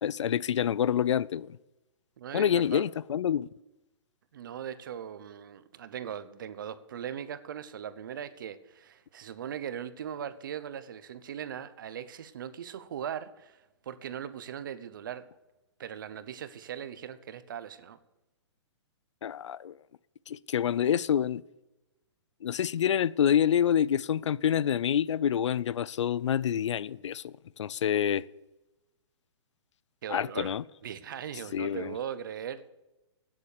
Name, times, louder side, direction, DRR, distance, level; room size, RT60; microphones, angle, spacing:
voice 1, 0.0-1.5 2.3-3.5 19.2-19.7 20.3-21.4 22.4-27.3 27.6-28.2 30.1-30.6 31.5-31.9, left 9 dB, 80° left, 0.5 m, -27 dB
voice 2, 2.2-2.8 4.3-13.6 13.9-15.3 15.8-18.0 30.0-30.6 30.8-32.6, right 9 dB, 45° right, 0.8 m, -39 dB
11.5 x 9.8 x 6.7 m
hypercardioid pair, 175°, 15 cm